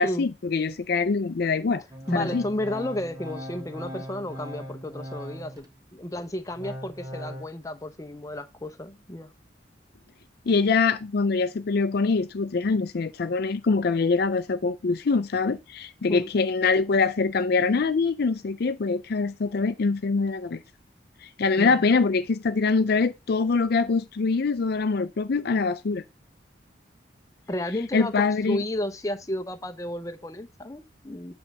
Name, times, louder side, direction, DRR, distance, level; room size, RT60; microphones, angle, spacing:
voice 1, 0.0-1.8 2.1-2.4 10.5-20.6 21.2-26.0 27.9-28.6, left 4 dB, 60° left, 0.5 m, -24 dB
Organ, 1.9-5.7 6.2-7.5, equal, 20° right, 1.3 m, -39 dB
voice 2, 2.1-5.7 5.9-9.3 16.1-16.3 21.6-21.8 27.5-31.3, left 1 dB, 20° left, 0.8 m, -32 dB
8.8 x 3.4 x 6.5 m
head